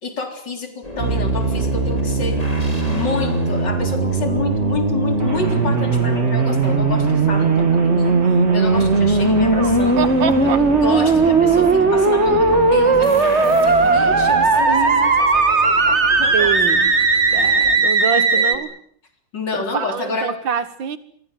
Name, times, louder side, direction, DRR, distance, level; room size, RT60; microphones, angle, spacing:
voice 1, 0.0-2.4 2.9-10.0 10.4-16.5 17.3-17.8 18.0-18.6 19.3-20.3, left 3 dB, 65° left, 4.5 m, -29 dB
sound 1, 0.8-17.8, equal, 20° left, 5.1 m, -34 dB
sound 2, 1.0-18.5, right 3 dB, 35° right, 2.3 m, -17 dB
sound 3, 5.2-14.6, right 3 dB, 60° right, 4.1 m, -31 dB
voice 2, 9.5-10.6 14.6-15.1 16.3-16.9 17.3-18.7 19.5-21.0, right 7 dB, 85° right, 2.3 m, -25 dB
27.5 x 23.0 x 7.9 m
omnidirectional pair, 2.1 m